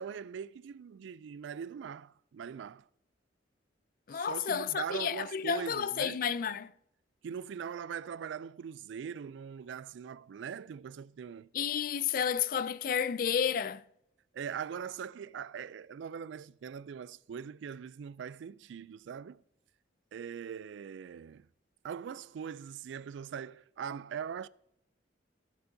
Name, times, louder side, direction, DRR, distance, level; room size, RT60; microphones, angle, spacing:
voice 1, 0.0-2.9 4.1-6.2 7.2-11.5 14.3-19.4 20.1-21.5 21.8-24.5, right 7 dB, 75° right, 0.3 m, -41 dB
voice 2, 4.1-6.7 11.5-13.8, left 7 dB, 50° left, 0.3 m, -31 dB
16.5 x 6.9 x 2.7 m
head